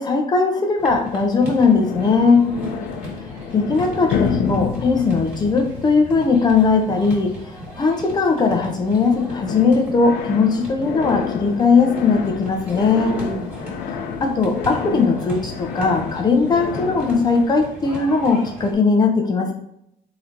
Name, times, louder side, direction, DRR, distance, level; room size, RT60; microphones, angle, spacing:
voice 1, 0.0-2.5 3.5-7.3 7.8-13.3 14.2-19.5, left 4 dB, 25° left, 4 dB, 0.6 m, -18 dB
sound 1, 0.8-18.7, equal, 10° right, 1.6 m, -37 dB
sound 2, 1.8-8.8 9.1-17.5, left 7 dB, 90° left, 0.5 m, -30 dB
voice 2, 2.1-3.0 12.9-13.7, right 3 dB, 50° right, 6 dB, 0.5 m, -32 dB
3.8 x 2.8 x 4.4 m, 0.76 s
cardioid pair, 160°, 16 cm